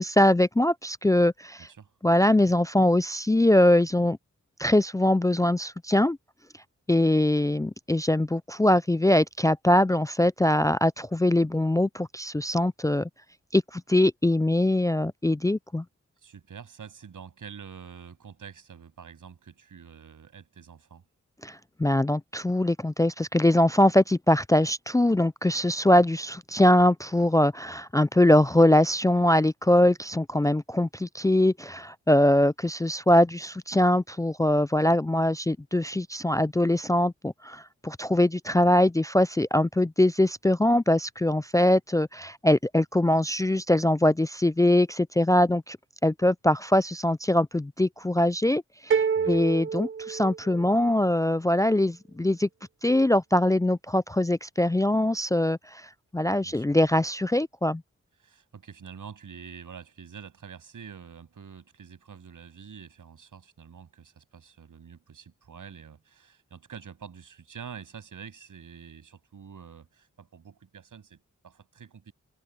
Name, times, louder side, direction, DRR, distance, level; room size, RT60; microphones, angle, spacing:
voice 1, 0.0-1.7 2.0-4.2 4.6-6.2 6.9-13.1 13.5-15.8 21.4-45.8 46.0-52.5 52.8-57.8, left 1 dB, 10° left, 0.4 m, -22 dB
voice 2, 16.2-21.0 38.5-38.8 49.1-49.4 56.4-56.6 58.2-72.1, right 7 dB, 85° right, 7.8 m, -46 dB
sound 1, 48.9-50.9, right 6 dB, 40° right, 0.6 m, -27 dB
cardioid pair, 45°, 31 cm